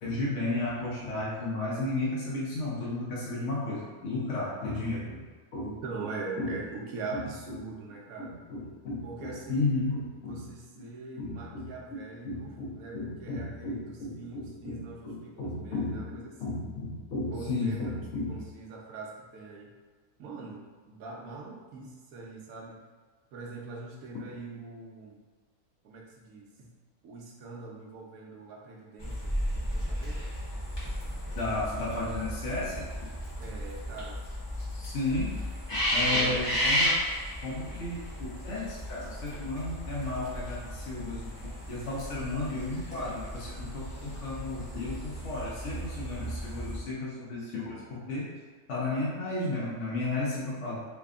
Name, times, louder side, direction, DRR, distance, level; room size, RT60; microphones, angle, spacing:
voice 1, 0.0-5.2 5.5-5.7 6.4-6.6 7.1-7.2 7.5-7.6 8.2-10.5 10.8-10.9 11.2-18.4 31.4-32.9 34.7-35.4 35.7-37.0 37.4-41.3 41.7-48.3 48.7-50.8, left 2 dB, 60° left, -6 dB, 1.0 m, -34 dB
voice 2, 5.6-8.3 9.0-9.6 10.3-16.6 17.3-18.0 18.3-19.7 20.2-22.8 23.3-25.2 25.8-26.7 27.0-30.3 33.4-34.2 36.1-36.4 40.2-40.4, right 3 dB, 70° right, -2 dB, 1.1 m, -42 dB
sound 1, 29.0-46.8, equal, 20° left, 0.9 m, -34 dB
3.3 x 2.2 x 3.6 m, 1.5 s
omnidirectional pair, 1.6 m